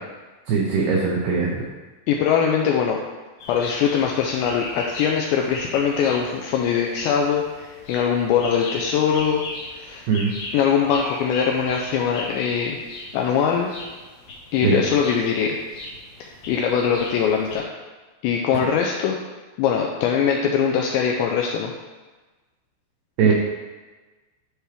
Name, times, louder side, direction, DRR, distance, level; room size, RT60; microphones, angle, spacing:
voice 1, 0.5-1.6 10.1-10.3 14.6-14.8 23.2-23.3, right 5 dB, 80° right, -3 dB, 2.3 m, -20 dB
voice 2, 2.1-3.0 3.5-9.4 9.7-10.0 10.5-12.8 13.1-13.7 14.5-15.6 16.2-17.6 18.2-19.2 19.6-21.7 23.3-23.4, left 7 dB, 90° left, 0 dB, 2.5 m, -22 dB
sound 1, 3.4-17.6, left 2 dB, 60° left, 2.0 m, -38 dB
11.5 x 4.5 x 3.4 m, 1.2 s
omnidirectional pair, 5.7 m